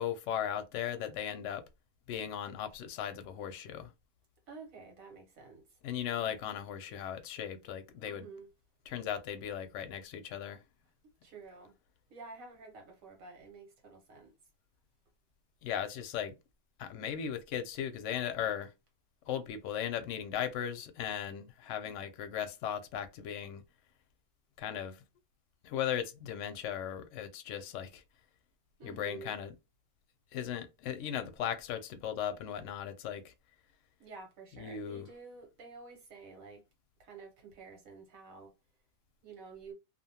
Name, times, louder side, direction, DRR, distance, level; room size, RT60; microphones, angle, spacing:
voice 1, 0.0-1.6 2.1-3.9 5.8-8.3 8.9-10.6 15.6-16.3 16.8-18.7 19.3-23.6 24.6-25.0 25.6-28.0 28.8-29.5 30.3-33.3 34.6-35.1, left 9 dB, 70° left, 0.8 m, -37 dB
voice 2, 4.5-5.6 8.0-8.5 11.2-11.7 12.1-14.3 28.8-29.3 34.0-36.6 37.0-38.5 39.2-39.7, right 4 dB, 80° right, 1.5 m, -50 dB
2.7 x 2.1 x 2.7 m
omnidirectional pair, 1.4 m